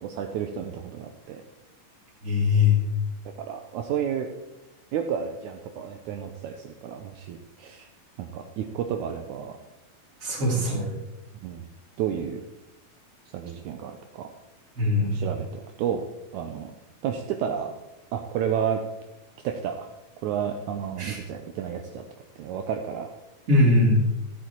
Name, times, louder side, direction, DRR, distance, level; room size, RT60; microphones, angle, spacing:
voice 1, 0.0-1.4 3.3-4.3 4.9-7.9 8.2-9.6 10.5-10.9 11.4-11.6 12.0-12.4 13.3-14.3 15.0-16.0 16.3-16.7 17.0-17.7 18.1-18.8 19.4-19.9 20.2-22.0 22.4-23.1, right 8 dB, 80° right, 4 dB, 1.8 m, -31 dB
voice 2, 2.2-2.8 10.2-11.0 14.8-15.2 21.0-21.2 23.5-24.0, left 2 dB, 25° right, -2 dB, 2.5 m, -21 dB
14.0 x 8.3 x 4.5 m, 1.0 s
omnidirectional pair, 4.1 m